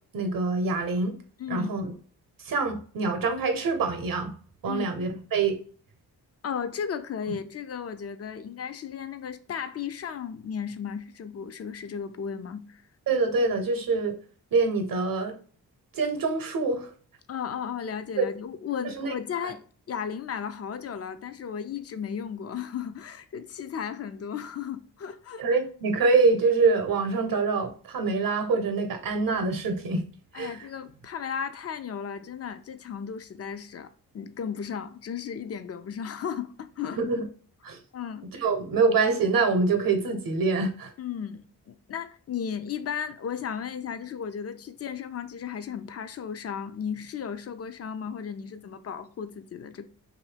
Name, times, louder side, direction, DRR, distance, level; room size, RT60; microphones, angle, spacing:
voice 1, 0.1-1.1 1.5-1.9 2.4-4.3 4.6-5.6 13.1-14.2 14.5-15.4 15.9-16.9 18.9-19.1 19.4-19.5 25.4-30.0 30.3-30.7 36.9-37.2 37.6-37.8 38.4-40.9, right 4 dB, 55° right, 0.8 m, -25 dB
voice 2, 1.4-1.7 4.7-4.9 6.4-12.8 17.3-25.4 30.3-33.9 34.1-37.0 37.9-38.5 41.0-49.9, left 7 dB, 40° left, 0.4 m, -35 dB
2.6 x 2.6 x 3.3 m
supercardioid pair, 50°, 41 cm